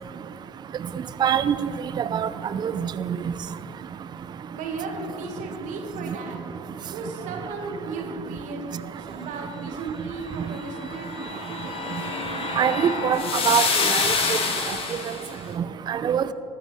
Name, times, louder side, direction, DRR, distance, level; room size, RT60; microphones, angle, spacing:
voice 1, 1.2-1.6 2.0-2.3 2.6-2.7 3.1-3.2 12.6-14.1 15.9-16.2, right 8 dB, 25° right, 14 dB, 0.4 m, -23 dB
voice 2, 4.5-6.4 6.9-8.7 9.0-11.9, right 3 dB, 50° right, 2 dB, 2.0 m, -35 dB
sound 1, 10.7-15.3, left 4 dB, 35° left, 1.6 m, -27 dB
19.5 x 9.7 x 3.5 m, 2.8 s
figure-of-eight pair, 60°, 17 cm